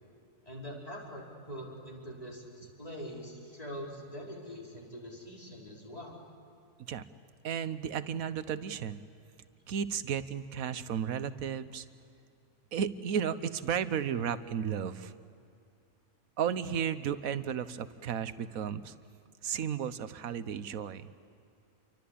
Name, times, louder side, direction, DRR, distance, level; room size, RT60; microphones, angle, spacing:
voice 1, 0.4-6.2 17.2-17.4, equal, 25° left, -3 dB, 5.5 m, -44 dB
voice 2, 7.4-9.0 9.7-11.8 12.7-15.1 16.4-18.9 19.4-21.1, right 8 dB, 75° right, 13 dB, 1.4 m, -33 dB
28.5 x 24.0 x 8.6 m, 2.5 s
omnidirectional pair, 1.5 m